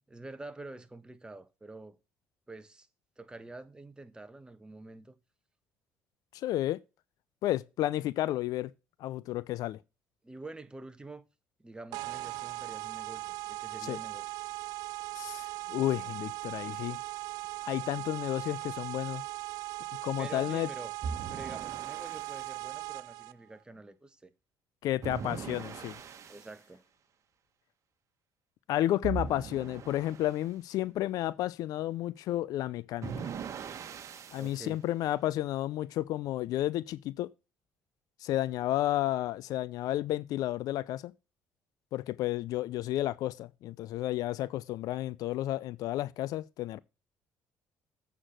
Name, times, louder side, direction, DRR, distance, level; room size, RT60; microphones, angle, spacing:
voice 1, 0.1-2.0 2.5-2.9 3.2-5.2 10.2-11.3 11.6-14.3 20.2-20.9 21.3-24.3 26.3-26.8 34.3-34.8, right 2 dB, 15° right, 1.4 m, -47 dB
voice 2, 6.3-6.8 7.4-8.7 9.0-9.8 13.8-14.0 15.1-17.0 17.6-19.2 20.0-20.7 24.8-26.0 28.7-33.3 34.3-37.3 38.2-41.1 41.9-46.8, left 14 dB, 70° left, 0.5 m, -32 dB
sound 1, 11.9-23.3, right 19 dB, 80° right, 0.4 m, -39 dB
sound 2, 21.0-22.5 25.0-26.5 29.0-30.4 33.0-34.6, right 6 dB, 50° right, 1.4 m, -40 dB
8.1 x 6.0 x 6.6 m
supercardioid pair, 75°, 7 cm